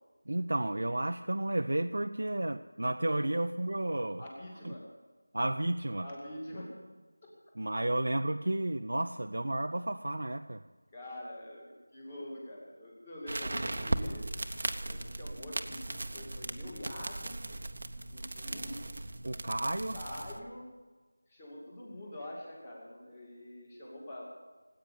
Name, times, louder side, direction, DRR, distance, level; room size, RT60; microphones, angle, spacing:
voice 1, 0.3-4.2 4.6-4.7 5.3-6.1 7.6-10.6 19.2-20.0, right 1 dB, 60° right, 6 dB, 0.6 m, -32 dB
voice 2, 4.2-4.8 6.0-6.8 10.9-14.3 14.8-17.4 18.1-18.8 19.9-20.7 21.3-24.3, left 1 dB, 15° left, -3 dB, 2.4 m, -45 dB
sound 1, 13.3-20.4, right 2 dB, 40° right, 0.9 m, -37 dB
18.5 x 8.9 x 8.4 m, 1.3 s
figure-of-eight pair, 180°, 0 cm